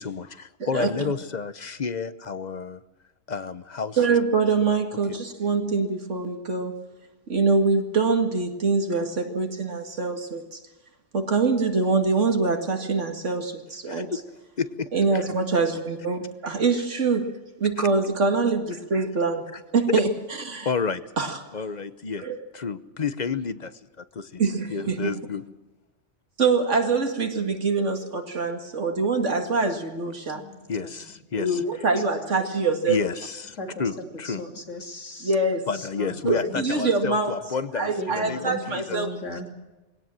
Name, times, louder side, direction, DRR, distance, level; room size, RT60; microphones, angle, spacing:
voice 1, 0.0-2.8 3.3-4.0 13.9-14.2 14.6-14.9 15.1-15.2 17.8-17.9 19.5-19.6 20.6-21.0 21.5-22.3 22.5-23.7 24.1-24.4 24.7-25.4 30.7-31.6 32.9-34.4 35.7-39.0, left 5 dB, 40° left, 13 dB, 0.9 m, -30 dB
voice 2, 0.6-0.9 4.0-6.8 7.3-10.6 11.1-14.1 14.9-17.3 17.6-19.4 19.7-20.1 20.5-20.7 21.2-21.4 22.2-22.5 24.4-25.1 26.4-30.4 31.4-33.0 35.2-35.7 36.3-37.4 37.7-39.1, right 4 dB, 75° right, 5 dB, 2.4 m, -24 dB
voice 3, 30.3-30.9 31.4-31.5 33.6-33.9 34.2-35.3 35.7-36.7 38.0-39.5, left 1 dB, 80° left, 2 dB, 3.3 m, -38 dB
21.5 x 17.5 x 7.6 m, 1.1 s
omnidirectional pair, 1.2 m